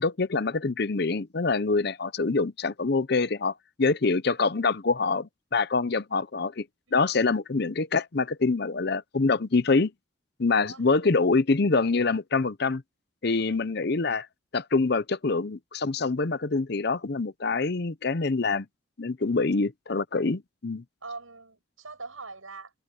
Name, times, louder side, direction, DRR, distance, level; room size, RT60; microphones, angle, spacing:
voice 1, 0.0-6.6 6.9-9.9 10.4-12.8 13.2-14.3 14.5-18.7 19.0-20.8, left 3 dB, 50° left, 0.7 m, -25 dB
voice 2, 19.2-19.6 21.0-22.7, right 3 dB, 90° right, 7.8 m, -43 dB
head